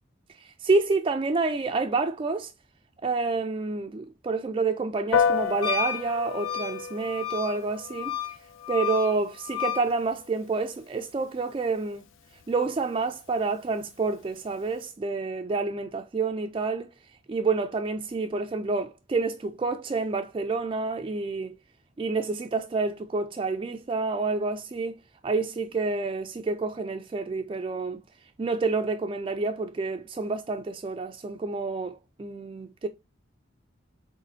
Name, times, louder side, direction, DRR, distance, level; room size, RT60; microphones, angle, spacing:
voice 1, 0.4-2.5 3.0-8.2 8.7-12.1 12.5-16.9 17.3-21.5 22.0-25.0 25.2-28.0 28.4-32.9, right 3 dB, 25° right, 0.3 m, -28 dB
Piano, 5.1-14.9, left 6 dB, 75° left, 0.4 m, -34 dB
Wind instrument woodwind instrument, 5.6-9.9, left 8 dB, 25° left, 1.1 m, -32 dB
4.3 x 4.1 x 2.5 m
head